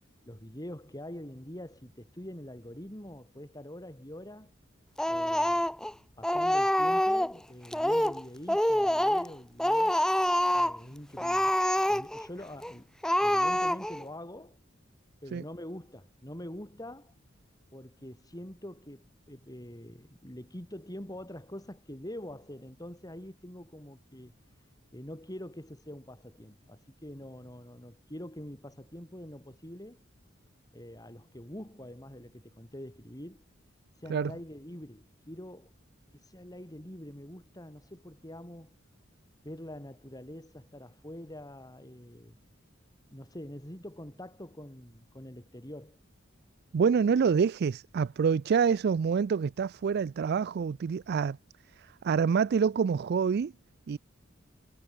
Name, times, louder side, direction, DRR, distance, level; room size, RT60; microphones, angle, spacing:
voice 1, 0.3-4.5 5.1-5.8 6.2-10.0 10.5-11.5 11.9-12.9 13.2-14.6 15.2-17.1 17.7-30.0 30.7-33.4 33.9-35.7 36.1-38.7 39.4-42.4 43.1-46.0, left 1 dB, 20° left, 6.2 m, -45 dB
Speech, 5.0-5.9 6.2-7.4 7.7-8.2 8.5-9.3 9.6-10.8 11.2-12.3 12.6-12.7 13.0-14.0, left 1 dB, 5° left, 0.6 m, -26 dB
voice 2, 46.7-51.4 51.7-53.5 53.9-54.0, right 6 dB, 55° right, 0.3 m, -27 dB
head